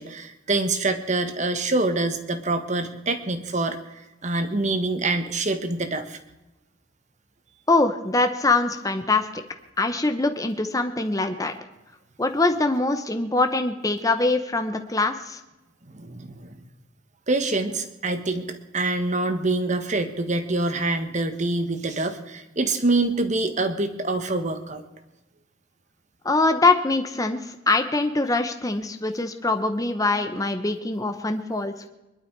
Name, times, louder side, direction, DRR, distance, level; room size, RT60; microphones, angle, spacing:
voice 1, 0.0-3.8 4.2-6.2 15.9-16.6 17.3-24.8, right 2 dB, 40° right, 8 dB, 1.4 m, -25 dB
voice 2, 7.7-9.4 9.8-11.5 12.2-15.4 26.2-31.9, left 2 dB, 20° left, 7 dB, 1.0 m, -23 dB
23.0 x 12.0 x 4.7 m, 0.99 s
head